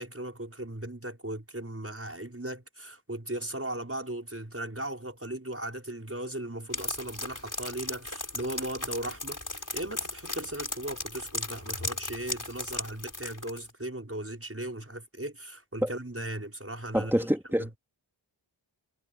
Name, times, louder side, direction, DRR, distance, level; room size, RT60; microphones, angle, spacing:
voice 1, 0.0-17.7, right 1 dB, 30° right, 6.1 m, -37 dB
sound 1, 6.7-13.6, left 2 dB, 40° left, 4.8 m, -36 dB
voice 2, 16.9-17.8, equal, 5° right, 3.3 m, -26 dB
wide cardioid pair, 50°, 47 cm